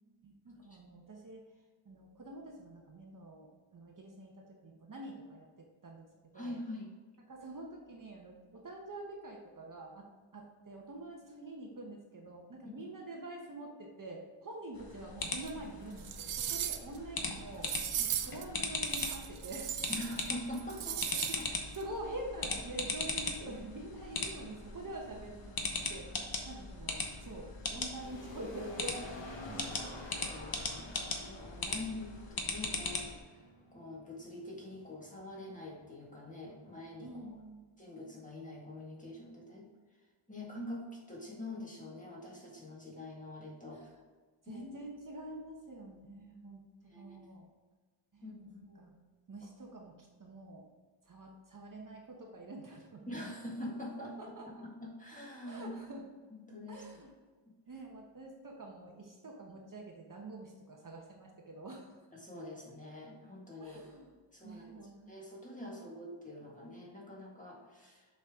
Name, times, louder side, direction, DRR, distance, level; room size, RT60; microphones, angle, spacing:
voice 1, 0.2-1.4 1.8-6.0 6.3-6.5 7.3-10.1 10.3-17.7 18.0-19.7 21.1-30.1 37.0-37.7 43.7-43.9 44.4-47.5 48.1-49.0 49.3-50.7 51.0-53.1 54.0-54.5 55.4-56.0 56.7-57.1 57.7-62.1 63.6-64.2 64.4-65.1, right 2 dB, 40° right, 0 dB, 1.0 m, -47 dB
voice 2, 6.3-6.9 12.8-12.9 19.9-21.0 21.3-21.5 30.3-33.4 33.7-37.3 37.8-39.7 40.3-43.9 44.5-44.6 46.9-47.2 48.2-48.8 53.1-54.1 54.5-54.6 54.8-55.7 56.5-56.8 62.1-63.8 64.3-68.1, left 1 dB, 15° left, -3 dB, 1.8 m, -45 dB
sound 1, 14.7-33.2, left 3 dB, 45° left, 1.0 m, -39 dB
sound 2, 15.4-15.5 16.0-17.0 17.6-18.4 18.9-20.3 20.5-21.4 21.7-21.8, right 10 dB, 85° right, 0.6 m, -37 dB
sound 3, 22.8-37.1, left 2 dB, 65° left, 1.4 m, -51 dB
6.9 x 5.6 x 3.6 m, 1.4 s
wide cardioid pair, 135°, 49 cm